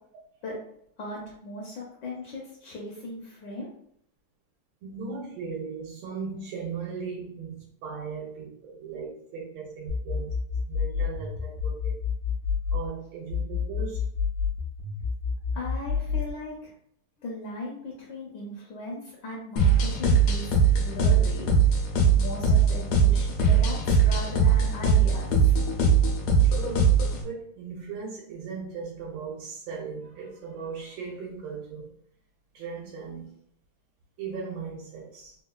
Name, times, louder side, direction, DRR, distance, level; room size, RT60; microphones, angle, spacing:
voice 1, 1.0-3.7 15.5-16.7 17.2-21.9 22.2-25.6, left 2 dB, 70° left, -3 dB, 1.2 m, -38 dB
voice 2, 4.8-10.3 10.7-12.0 12.7-14.1 26.4-26.9 27.2-31.9 32.5-33.3 34.2-35.4, right 5 dB, 80° right, -3 dB, 1.5 m, -37 dB
sound 1, 9.9-12.9 13.3-16.3, left 6 dB, 65° right, 0.9 m, -29 dB
sound 2, 19.6-27.2, right 4 dB, 85° left, 1.5 m, -21 dB
3.6 x 2.2 x 2.3 m, 0.67 s
omnidirectional pair, 2.3 m